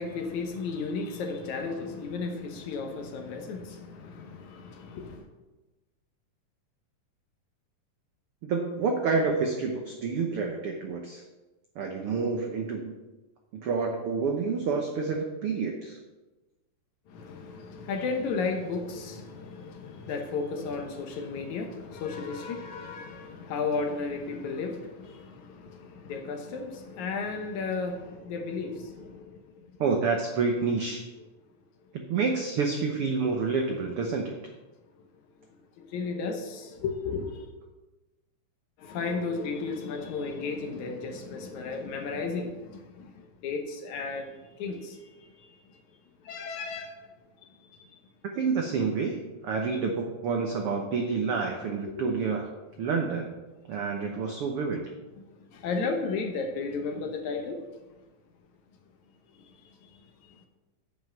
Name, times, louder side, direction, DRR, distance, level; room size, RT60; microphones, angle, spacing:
voice 1, 0.0-5.2 17.1-29.4 35.8-37.5 38.8-45.6 46.2-47.0 51.9-52.2 55.2-57.6 59.4-59.5 59.8-60.0, left 4 dB, 70° left, 2.1 m, -34 dB
voice 2, 8.4-11.2 11.7-12.9 13.5-16.0 29.8-31.0 32.1-34.4 48.3-52.5 52.8-53.4 53.7-54.8, right 4 dB, 75° right, 1.3 m, -28 dB
9.2 x 5.5 x 7.5 m
omnidirectional pair, 3.8 m